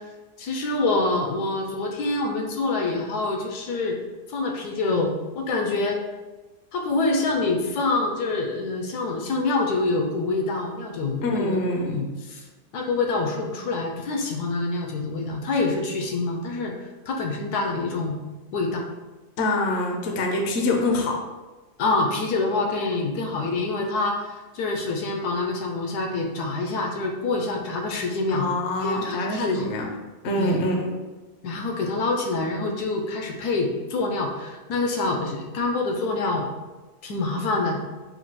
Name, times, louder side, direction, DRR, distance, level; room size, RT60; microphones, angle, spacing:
voice 1, 0.4-4.0 4.3-6.0 6.7-12.4 12.7-16.7 17.1-18.2 18.5-18.8 21.8-28.5 28.8-29.7 30.4-30.7 31.4-36.5 37.0-37.8, left 3 dB, 75° left, 2 dB, 1.1 m, -26 dB
voice 2, 11.2-12.0 19.4-21.2 28.3-29.9 30.2-30.9, left 2 dB, 60° left, 1 dB, 0.8 m, -25 dB
4.1 x 2.3 x 4.5 m, 1.2 s
omnidirectional pair, 1.8 m